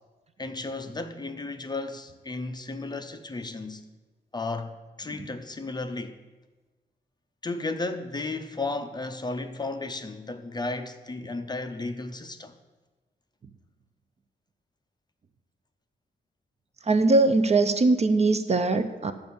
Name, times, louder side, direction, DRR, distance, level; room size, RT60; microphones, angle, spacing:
voice 1, 0.4-3.9 4.3-6.2 7.4-12.5, left 3 dB, 20° left, 0.5 m, -34 dB
voice 2, 16.9-19.1, right 3 dB, 35° right, 0.5 m, -21 dB
11.0 x 5.1 x 7.1 m
wide cardioid pair, 155°, 19 cm